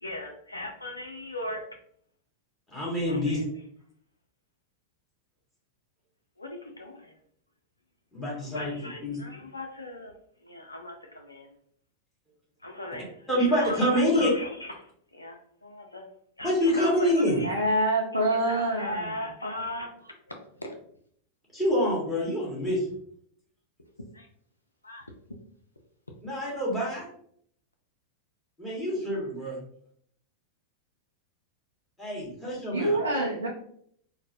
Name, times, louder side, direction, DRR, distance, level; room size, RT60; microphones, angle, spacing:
voice 1, 0.0-1.6 3.0-3.5 6.4-7.1 8.4-10.1 10.4-11.5 12.6-16.1 16.4-17.7 18.1-20.7 24.1-24.3 24.8-25.1, left 1 dB, 80° left, 2 dB, 0.4 m, -38 dB
voice 2, 2.7-3.4 8.1-8.7 9.0-9.2 13.3-14.3 16.4-17.5 21.5-23.0 26.2-27.1 28.6-29.6 32.0-33.0, equal, 10° left, -6 dB, 1.5 m, -26 dB
voice 3, 17.4-19.0 32.7-33.5, right 1 dB, 85° right, -3 dB, 0.5 m, -26 dB
3.8 x 2.1 x 2.6 m, 0.65 s
figure-of-eight pair, 90°, 0 cm